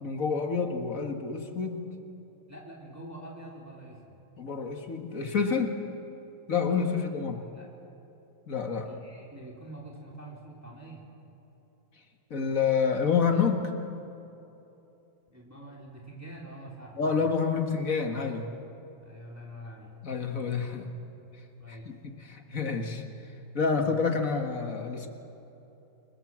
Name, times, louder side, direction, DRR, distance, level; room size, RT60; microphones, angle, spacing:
voice 1, 0.0-1.9 4.4-5.7 6.5-7.4 8.5-8.9 12.3-13.7 17.0-18.5 20.0-20.9 21.7-23.0 23.5-25.1, left 5 dB, 50° left, 4 dB, 2.1 m, -28 dB
voice 2, 2.5-4.2 7.5-7.7 8.8-11.1 15.3-17.4 19.0-19.9 21.6-21.9 23.8-24.0, right 1 dB, 10° right, -3 dB, 3.5 m, -46 dB
28.5 x 21.0 x 7.5 m, 3.0 s
omnidirectional pair, 1.8 m